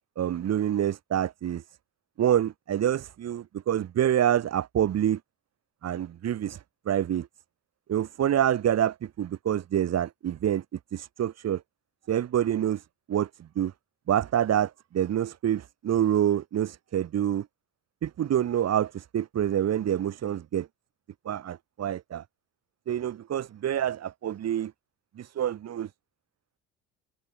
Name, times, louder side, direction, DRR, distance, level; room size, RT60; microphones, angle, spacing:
voice 1, 0.0-1.6 2.2-5.2 5.8-7.3 7.9-10.6 10.9-11.6 12.1-13.7 14.1-17.5 18.0-20.7 21.2-22.2 22.9-24.7 25.2-25.9, right 10 dB, 55° right, 4.6 m, -27 dB
supercardioid pair, 70°, 30 cm